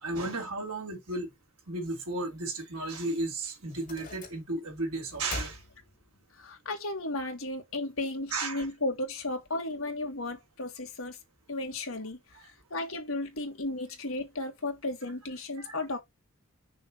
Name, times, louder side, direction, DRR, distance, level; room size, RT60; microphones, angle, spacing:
voice 1, 0.0-1.3 1.7-5.6 8.3-8.7 15.6-15.8, right 2 dB, 85° right, 3.3 m, -34 dB
sound 1, 3.7-4.7 5.1-6.4, left 2 dB, 35° left, 3.0 m, -42 dB
voice 2, 6.4-11.2 11.5-12.4 12.7-16.0, left 2 dB, 65° left, 1.9 m, -34 dB
6.1 x 3.4 x 5.3 m
head